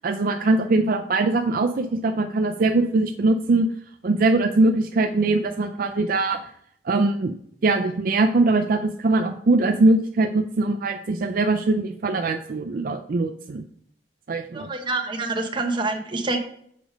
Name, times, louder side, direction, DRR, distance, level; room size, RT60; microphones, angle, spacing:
voice 1, 0.0-3.7 4.0-6.4 6.9-7.3 7.6-13.6 14.3-14.7, right 2 dB, 55° right, 5 dB, 0.4 m, -21 dB
voice 2, 14.5-16.4, right 3 dB, 25° right, 3 dB, 1.0 m, -26 dB
6.8 x 5.1 x 5.1 m, 0.68 s
head